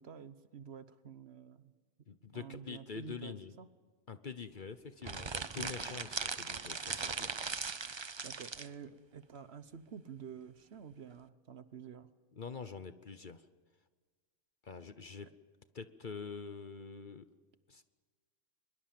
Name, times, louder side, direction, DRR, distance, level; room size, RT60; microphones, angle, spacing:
voice 1, 0.0-1.7 2.3-3.7 8.2-12.1 15.2-15.3, right 7 dB, 55° right, 13 dB, 1.1 m, -49 dB
voice 2, 2.1-3.6 4.1-7.4 12.3-13.5 14.6-15.3 15.7-17.3 17.7-17.8, left 5 dB, 45° left, 12 dB, 0.9 m, -45 dB
sound 1, 5.0-8.7, right 4 dB, 30° right, 0.5 m, -39 dB
23.0 x 22.0 x 7.5 m, 1.5 s
omnidirectional pair, 1.4 m